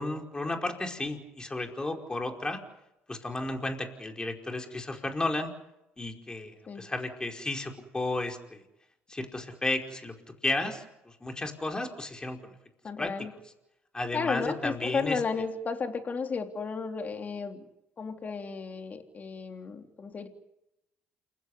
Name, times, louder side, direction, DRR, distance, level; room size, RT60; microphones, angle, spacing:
voice 1, 0.0-2.6 3.1-5.5 6.0-8.6 9.1-10.1 10.4-12.5 13.0-13.1 13.9-15.2, left 2 dB, 20° left, 3 dB, 5.0 m, -33 dB
voice 2, 12.8-13.3 14.1-17.7 18.0-20.3, left 5 dB, 40° left, 5 dB, 3.5 m, -33 dB
29.0 x 15.5 x 9.9 m, 0.87 s
cardioid pair, 85°, 4 cm